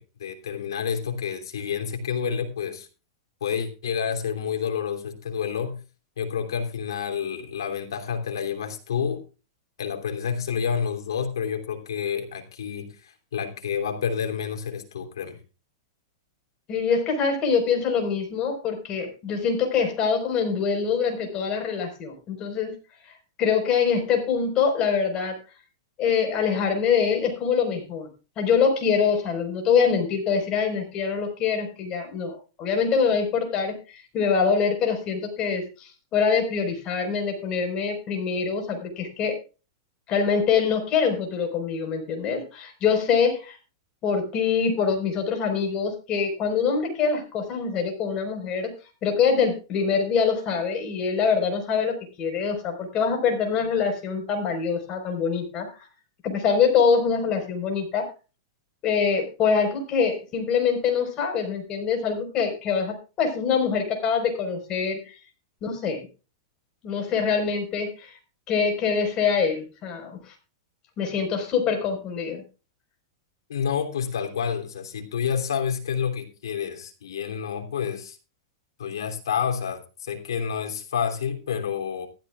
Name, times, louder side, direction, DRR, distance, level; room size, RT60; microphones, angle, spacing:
voice 1, 0.0-2.9 3.4-5.8 6.2-9.2 9.8-15.4 73.5-78.2 78.8-82.1, left 7 dB, 80° left, 5 dB, 3.1 m, -29 dB
voice 2, 16.7-22.8 23.4-25.4 26.0-28.1 28.4-39.4 40.1-43.6 44.0-48.7 49.0-55.7 56.2-58.1 58.8-65.1 65.6-66.1 66.8-68.1 68.5-70.3 71.0-72.4, left 6 dB, 35° left, 4 dB, 4.8 m, -24 dB
15.0 x 13.5 x 2.4 m, 0.32 s
hypercardioid pair, 120°, 2 cm